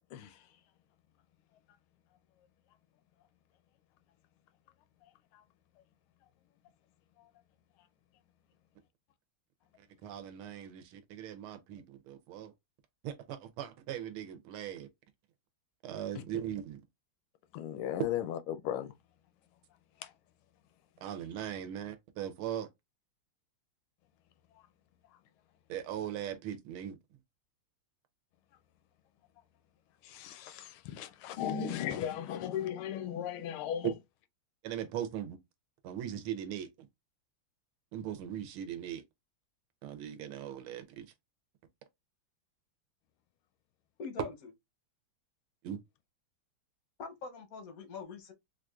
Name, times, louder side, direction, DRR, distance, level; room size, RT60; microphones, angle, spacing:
voice 1, 0.1-0.5 5.0-5.4 7.2-7.3 16.1-16.2 17.5-18.9 20.0-20.1 24.5-24.6 30.0-34.0, left 9 dB, 80° left, 1.4 m, -37 dB
voice 2, 10.0-12.5 13.0-14.9 15.8-16.8 21.0-22.7 25.7-27.0 34.6-35.4 35.8-36.7 37.9-39.0 39.8-41.0 45.6-45.8, right 10 dB, 80° right, 1.5 m, -39 dB
voice 3, 44.0-44.3 47.0-48.3, left 4 dB, 65° left, 0.9 m, -43 dB
4.5 x 2.5 x 2.3 m
omnidirectional pair, 2.3 m